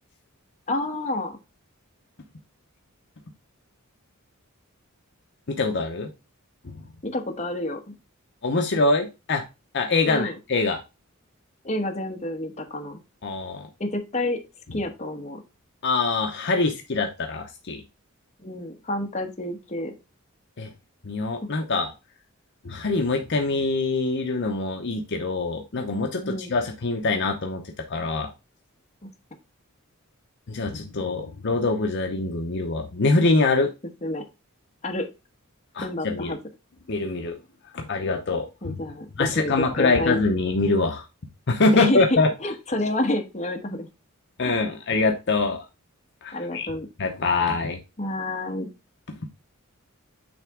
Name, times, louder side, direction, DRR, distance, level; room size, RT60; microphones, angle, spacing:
voice 1, 0.7-1.4 7.0-7.9 10.1-10.3 11.6-13.0 13.8-14.4 14.7-15.4 18.4-19.9 26.2-26.5 29.0-29.1 34.0-34.3 34.8-35.1 35.8-36.4 38.6-40.2 41.7-43.9 44.4-44.6 46.3-46.9 48.0-48.7, left 1 dB, 30° left, 2 dB, 1.2 m, -29 dB
voice 2, 5.5-6.1 6.6-6.7 8.4-9.4 9.7-10.8 13.2-13.7 15.8-17.8 20.6-20.7 21.0-21.9 22.6-27.6 27.9-28.3 30.5-33.7 35.7-36.3 36.9-37.4 37.7-38.8 39.2-41.1 41.5-42.3 44.4-45.6 46.2-46.7 47.0-47.8, left 3 dB, 55° left, 3 dB, 0.8 m, -24 dB
8.9 x 3.4 x 3.6 m, 0.27 s
head